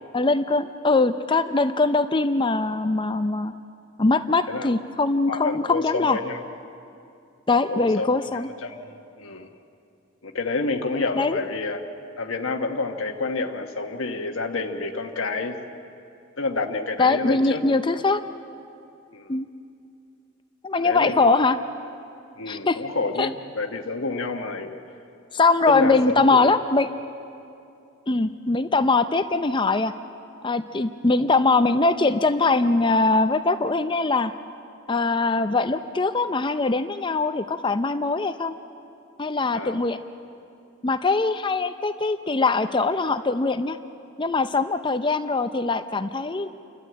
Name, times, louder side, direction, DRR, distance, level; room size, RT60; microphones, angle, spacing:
voice 1, 0.1-3.5 4.0-6.2 7.5-8.5 11.2-11.4 17.0-18.2 19.3-19.5 20.6-21.6 22.5-22.8 23.2-23.3 25.3-26.9 28.1-29.9 30.4-34.3 34.9-38.5 39.2-40.0 40.8-43.8 44.2-46.5, left 3 dB, 25° left, 10 dB, 0.5 m, -22 dB
voice 2, 5.3-6.4 7.7-8.8 9.2-9.5 10.2-11.8 12.2-15.8 16.4-17.6 19.1-19.3 20.8-21.2 22.4-24.8 25.7-26.5 39.5-39.8, left 3 dB, 70° left, 3 dB, 1.2 m, -28 dB
29.5 x 12.5 x 8.7 m, 2.6 s
head